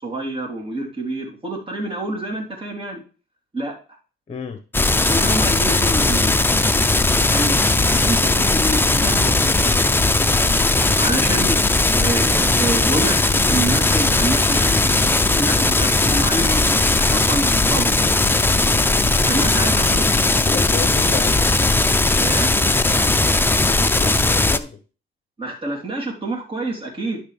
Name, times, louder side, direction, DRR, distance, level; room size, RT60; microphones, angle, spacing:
voice 1, 0.0-3.0 3.5-3.7 5.1-6.4 7.3-9.7 11.0-11.6 11.9-13.2 13.5-14.9 15.3-18.0 19.3-20.1 22.2-22.5 25.4-27.2, right 2 dB, 25° right, -2 dB, 3.6 m, -27 dB
voice 2, 4.3-4.6 20.5-21.4 23.9-24.8, left 5 dB, 35° left, 6 dB, 1.2 m, -31 dB
sound 1, 4.7-24.6, left 2 dB, 10° left, 0.6 m, -18 dB
11.5 x 6.3 x 3.4 m, 0.36 s
cardioid pair, 90°, 20 cm